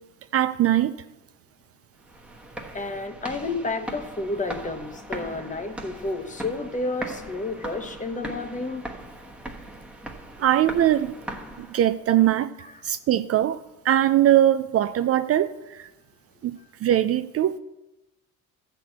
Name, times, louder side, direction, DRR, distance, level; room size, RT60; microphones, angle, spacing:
voice 1, 0.3-0.9 10.4-11.1 11.6-13.6 13.8-15.9 16.4-17.6, right 12 dB, 45° right, 0.5 m, -21 dB
sound 1, 2.0-12.0, right 1 dB, 5° right, 1.2 m, -39 dB
voice 2, 2.7-8.9 12.6-12.8, left 2 dB, 20° left, 1.2 m, -31 dB
13.0 x 4.6 x 8.0 m
cardioid pair, 110°, 34 cm